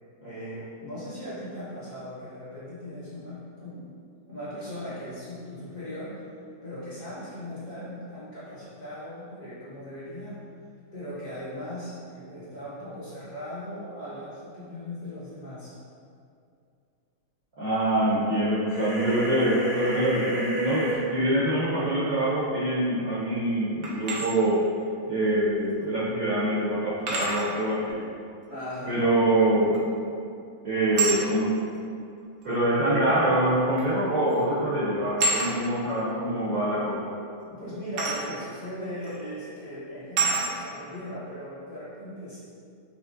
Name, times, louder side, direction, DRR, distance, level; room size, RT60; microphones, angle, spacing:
voice 1, 0.2-3.8 4.2-6.2 6.6-10.4 10.9-15.7 28.5-29.0 37.5-42.4, equal, 45° left, -10 dB, 1.4 m, -38 dB
voice 2, 17.6-24.7 25.1-28.1 28.9-29.8 30.6-31.6 32.4-37.1, right 1 dB, 60° right, -10 dB, 0.9 m, -25 dB
sound 1, 18.7-21.0, right 1 dB, 70° left, 2.2 m, -30 dB
sound 2, 23.8-24.3 25.8-25.9 27.1-27.5 29.7-30.1 31.0-31.2 32.4-32.5 33.8-34.0 34.3-34.5 35.2-35.5 38.0-38.2 39.0-39.2 40.2-40.5, right 3 dB, 85° right, 1.5 m, -27 dB
5.1 x 2.9 x 2.4 m, 2.4 s
omnidirectional pair, 2.2 m